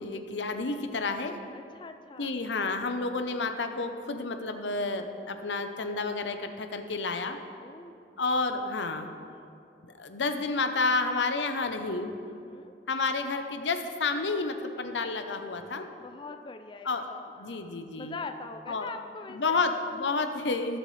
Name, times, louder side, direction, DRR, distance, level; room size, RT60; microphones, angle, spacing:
voice 1, 0.0-1.4 2.2-7.4 8.2-9.1 9.8-12.1 12.9-15.9 16.8-17.1 17.4-18.2 18.7-18.9 19.3-20.8, left 3 dB, 85° left, 7 dB, 0.8 m, -30 dB
voice 2, 1.5-2.4 7.6-8.2 9.2-9.6 12.2-12.7 16.0-19.7, left 4 dB, 25° left, 7 dB, 0.4 m, -43 dB
18.5 x 7.2 x 3.3 m, 2.6 s
head